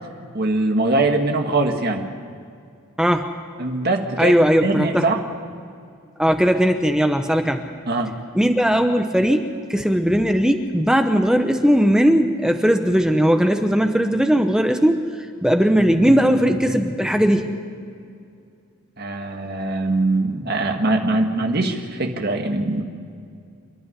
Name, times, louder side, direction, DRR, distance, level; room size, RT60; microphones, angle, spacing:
voice 1, 0.3-2.0 3.6-4.3 4.6-5.2 7.9-8.1 19.0-22.8, right 2 dB, 45° right, 3 dB, 1.6 m, -22 dB
voice 2, 3.0-3.3 4.2-5.1 6.2-7.6 8.3-17.5, equal, 5° right, 6 dB, 0.8 m, -18 dB
28.5 x 11.0 x 9.8 m, 2.4 s
head